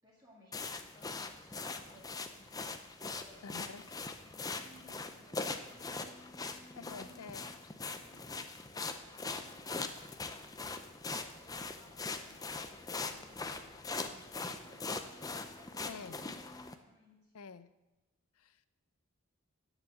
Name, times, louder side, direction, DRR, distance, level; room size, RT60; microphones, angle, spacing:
voice 1, 0.0-3.9 4.4-6.2 7.0-15.2 15.5-17.3, left 1 dB, 15° right, -6 dB, 2.2 m, -62 dB
sound 1, 0.5-16.7, left 3 dB, 15° left, 0.6 m, -42 dB
voice 2, 3.4-3.8 6.8-7.5 15.9-16.2 17.3-17.7 18.3-18.7, left 5 dB, 90° left, 14 dB, 0.6 m, -48 dB
10.5 x 7.3 x 7.6 m, 1.1 s
head